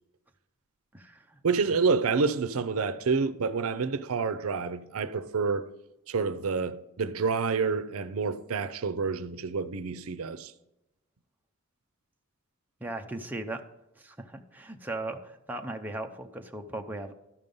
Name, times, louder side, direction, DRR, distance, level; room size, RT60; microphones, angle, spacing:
voice 1, 0.9-1.4 12.8-13.6 14.0-17.1, right 2 dB, 10° right, 0.6 m, -38 dB
voice 2, 1.4-5.6 6.1-10.5, right 4 dB, 80° right, 0.5 m, -28 dB
12.5 x 5.5 x 5.3 m
head